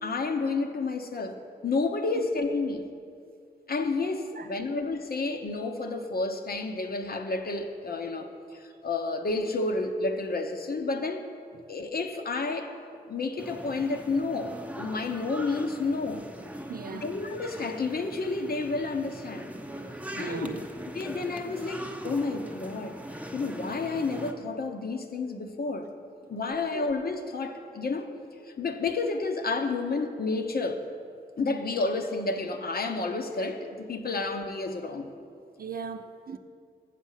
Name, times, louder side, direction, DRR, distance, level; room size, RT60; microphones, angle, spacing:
voice 1, 0.0-2.9 3.7-11.2 11.7-12.7 13.1-16.3 17.0-19.5 20.2-20.5 20.9-23.0 23.3-25.9 26.3-28.1 28.4-30.9 31.4-35.1, left 3 dB, 55° left, 0.9 m, -30 dB
voice 2, 4.3-4.8 16.7-17.1 20.1-20.7 26.7-26.9 35.6-36.4, right 6 dB, 50° right, 0.6 m, -38 dB
sound 1, 13.4-24.3, right 1 dB, 5° right, 0.9 m, -41 dB
7.5 x 7.3 x 5.7 m
supercardioid pair, 45°, 19 cm